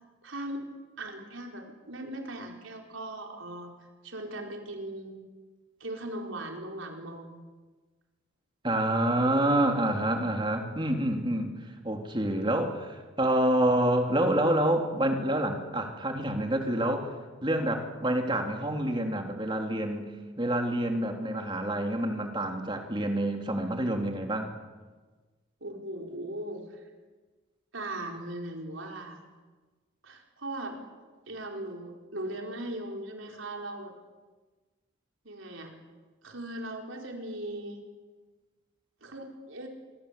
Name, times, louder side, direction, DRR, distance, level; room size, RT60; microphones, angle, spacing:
voice 1, 0.2-0.6 1.0-3.7 4.0-5.2 5.8-7.3 25.6-26.8 27.7-29.2 30.0-30.8 31.3-33.9 35.2-35.7 36.2-37.8 39.0-39.7, right 1 dB, 85° right, 2 dB, 4.6 m, -38 dB
voice 2, 8.6-11.5 11.8-17.1 17.4-20.1 20.4-24.5, right 1 dB, 25° right, 4 dB, 3.1 m, -27 dB
26.5 x 23.0 x 8.4 m, 1.3 s
head